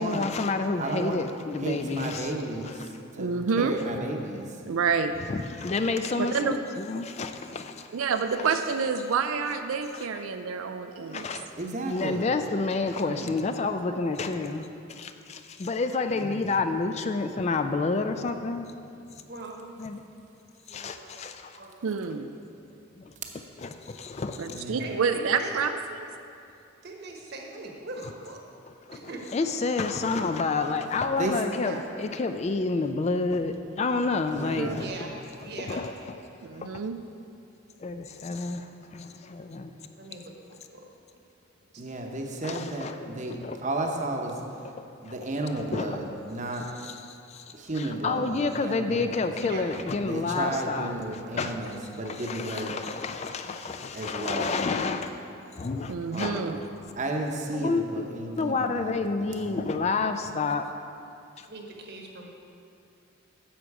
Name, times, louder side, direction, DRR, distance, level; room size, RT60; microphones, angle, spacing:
voice 1, 0.0-2.3 2.6-2.9 5.3-8.1 8.4-8.6 9.9-10.2 11.1-11.5 11.9-18.8 19.1-19.2 19.8-20.1 20.7-21.6 23.0-23.1 23.6-24.6 28.7-35.1 35.4-36.2 36.5-36.8 37.8-39.9 42.4-43.1 43.4-43.6 45.1-45.2 45.6-46.0 46.8-51.7 52.1-55.1 55.5-56.4 57.5-58.0 58.4-60.7 61.4-61.5, left 3 dB, 30° left, 8 dB, 0.3 m, -30 dB
voice 2, 0.8-1.2 1.6-3.3 3.6-4.6 11.6-12.3 13.0-13.3 16.1-16.5 24.5-25.0 31.2-31.3 34.4-34.9 41.8-46.7 47.5-49.3 50.0-52.7 53.9-54.7 56.1-59.8, right 2 dB, 35° right, 2 dB, 0.9 m, -33 dB
voice 3, 3.2-3.8 4.7-5.1 6.1-6.6 7.9-11.2 21.8-22.3 24.4-26.1 34.6-34.7 36.4-37.0 55.9-56.6, right 5 dB, 90° right, 8 dB, 0.4 m, -28 dB
voice 4, 19.3-19.7 20.7-21.1 21.5-21.8 24.8-25.5 26.8-28.4 28.9-29.2 31.6-31.8 34.8-35.1 35.4-35.8 40.0-40.3 40.7-40.8 49.4-49.6 51.2-51.4 53.4-53.5 54.3-54.4 61.5-62.3, right 3 dB, 55° right, 1 dB, 1.2 m, -41 dB
10.5 x 7.5 x 4.7 m, 2.6 s
head